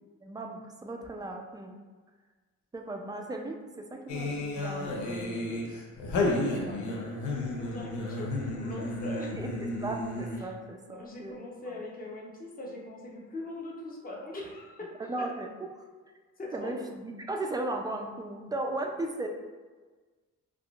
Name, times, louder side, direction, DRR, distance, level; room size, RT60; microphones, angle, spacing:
voice 1, 0.2-1.8 2.7-5.8 6.3-7.0 7.7-8.0 9.3-11.4 15.1-15.5 15.7-15.8 16.5-19.3, right 2 dB, 15° right, 3 dB, 0.4 m, -37 dB
sound 1, 4.1-10.6, left 2 dB, 75° left, 0.6 m, -32 dB
voice 2, 6.5-6.9 7.4-9.3 10.4-10.5 10.9-14.9 16.4-16.7, left 2 dB, 30° left, -2 dB, 0.8 m, -41 dB
3.5 x 2.4 x 2.3 m, 1.4 s
cardioid pair, 90°, 30 cm